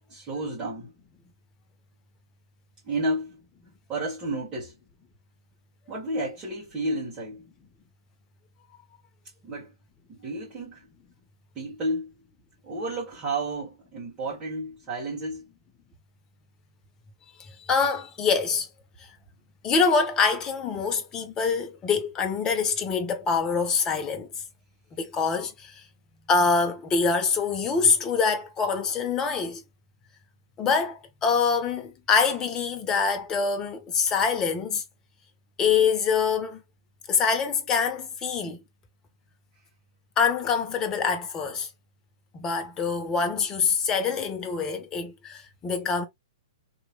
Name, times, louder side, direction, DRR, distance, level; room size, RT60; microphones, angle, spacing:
voice 1, 0.1-0.9 2.8-3.4 3.9-4.7 5.9-7.5 9.4-9.7 10.1-10.9 11.5-12.1 12.6-15.5, right 1 dB, 20° right, 1.5 m, -31 dB
voice 2, 17.7-18.7 19.6-24.3 24.9-25.8 26.3-29.6 30.6-34.8 35.6-36.6 37.1-38.6 40.2-41.7 42.3-46.1, left 5 dB, 20° left, 0.8 m, -25 dB
3.0 x 2.8 x 2.3 m
hypercardioid pair, 120°, 3 cm